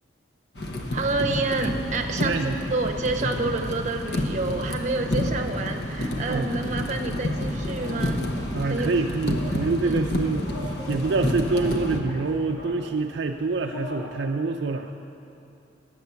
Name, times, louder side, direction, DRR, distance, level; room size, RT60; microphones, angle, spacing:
sound 1, 0.5-12.0, left 1 dB, 60° left, 0.9 m, -29 dB
voice 1, 0.9-8.2 8.7-8.9 9.8-9.9, right 3 dB, 40° right, 3 dB, 0.7 m, -28 dB
voice 2, 2.2-2.6 6.3-6.5 8.5-14.9, right 3 dB, 65° right, 4 dB, 0.4 m, -26 dB
sound 2, 7.2-14.1, equal, 80° left, 2.4 m, -42 dB
10.5 x 7.8 x 6.8 m, 2.8 s
head